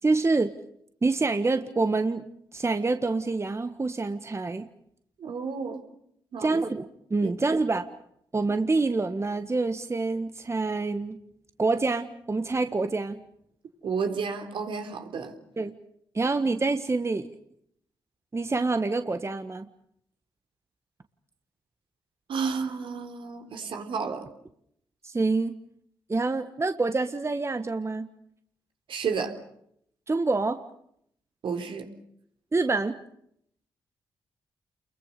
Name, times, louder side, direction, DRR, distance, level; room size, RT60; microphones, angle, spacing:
voice 1, 0.0-0.5 1.0-2.2 2.5-4.7 6.4-7.9 8.3-11.2 11.6-13.2 15.6-15.7 16.1-17.3 18.3-19.7 25.0-25.5 26.1-28.1 30.1-30.6 32.5-33.0, right 3 dB, 30° right, 1.6 m, -26 dB
voice 2, 5.2-5.8 6.3-6.6 7.2-7.6 13.8-15.3 22.3-24.3 28.9-29.3 31.4-31.9, right 5 dB, 70° right, 3.8 m, -31 dB
28.5 x 22.5 x 6.8 m
supercardioid pair, 55°, 9 cm